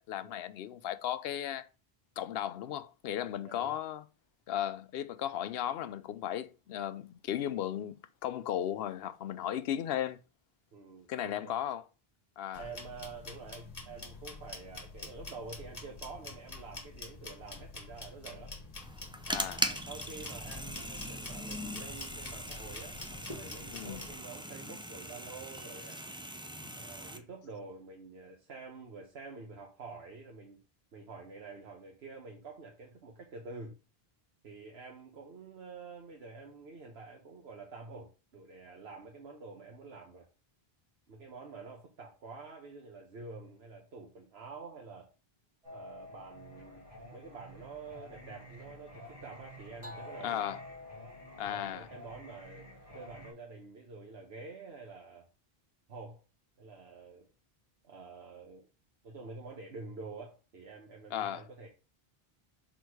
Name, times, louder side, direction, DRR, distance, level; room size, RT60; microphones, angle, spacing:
voice 1, 0.0-1.7 2.2-4.0 4.5-10.2 11.1-11.8 12.4-12.7 19.3-19.7 23.7-24.0 50.2-50.6 51.4-51.9 61.1-61.4, left 11 dB, 75° left, 0.8 m, -36 dB
voice 2, 3.3-3.7 10.7-11.6 12.5-18.6 19.4-26.0 26.8-30.6 30.9-33.7 34.4-40.3 41.1-45.1 45.7-50.5 51.5-52.7 52.9-55.3 55.9-56.2 56.6-57.3 57.8-58.7 59.0-61.7, right 4 dB, 85° right, 1.4 m, -48 dB
sound 1, 12.5-24.1, left 2 dB, 40° left, 1.5 m, -47 dB
sound 2, 18.8-27.2, equal, 5° right, 0.5 m, -40 dB
Singing, 45.6-53.3, left 1 dB, 35° right, 3.2 m, -49 dB
6.2 x 4.0 x 4.7 m
omnidirectional pair, 1.0 m